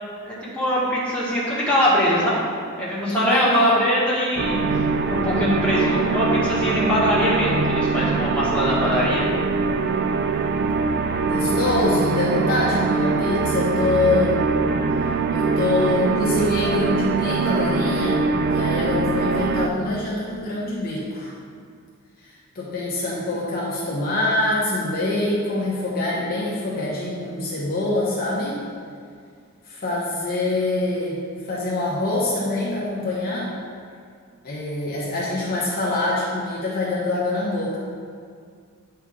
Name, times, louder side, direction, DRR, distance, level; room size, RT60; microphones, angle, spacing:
voice 1, 0.2-2.5 2.7-9.2, equal, 5° left, -8 dB, 1.7 m, -22 dB
voice 2, 3.1-3.7 11.2-14.5 15.3-21.3 22.2-28.6 29.7-31.2 31.5-33.5 34.4-37.8, left 2 dB, 45° left, -6 dB, 1.0 m, -25 dB
sound 1, 4.4-19.7, right 4 dB, 45° right, 0.3 m, -22 dB
8.3 x 4.5 x 3.6 m, 2.2 s
head